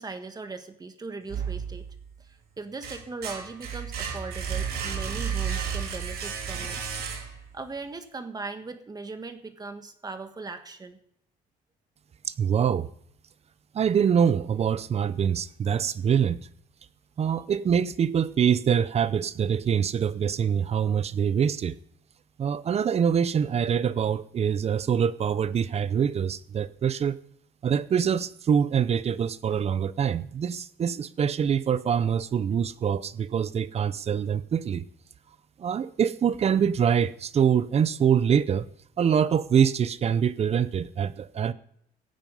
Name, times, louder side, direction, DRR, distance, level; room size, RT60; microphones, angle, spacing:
voice 1, 0.0-1.8 2.2-6.8 7.5-11.0, right 3 dB, 25° right, 8 dB, 1.5 m, -39 dB
sound 1, 1.3-2.1 2.6-7.6, right 7 dB, 65° right, 3.0 m, -32 dB
voice 2, 12.3-12.9 13.7-16.4 17.2-21.8 22.4-27.2 27.6-34.8 35.6-38.7 39.0-41.5, right 7 dB, 40° right, 16 dB, 0.7 m, -24 dB
15.5 x 9.0 x 5.5 m, 0.69 s
cardioid pair, 110°, 17 cm